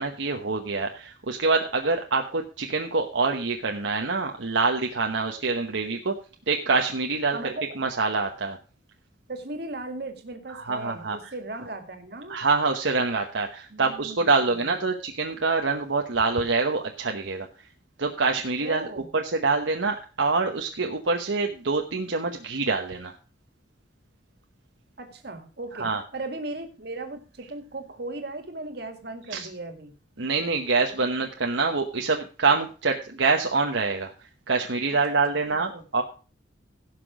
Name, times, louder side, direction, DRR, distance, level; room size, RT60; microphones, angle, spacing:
voice 1, 0.0-6.2 6.5-8.6 10.5-11.3 12.3-17.5 18.0-18.9 19.1-23.1 25.7-26.0 29.3-29.5 30.2-34.1 34.5-36.0, right 4 dB, 75° right, 3 dB, 1.1 m, -25 dB
voice 2, 7.3-7.8 9.3-12.4 13.7-14.6 18.6-19.1 25.0-25.9 26.1-29.9 34.9-35.2 35.5-35.8, right 2 dB, 55° right, 6 dB, 2.1 m, -37 dB
16.0 x 6.0 x 4.9 m, 0.37 s
head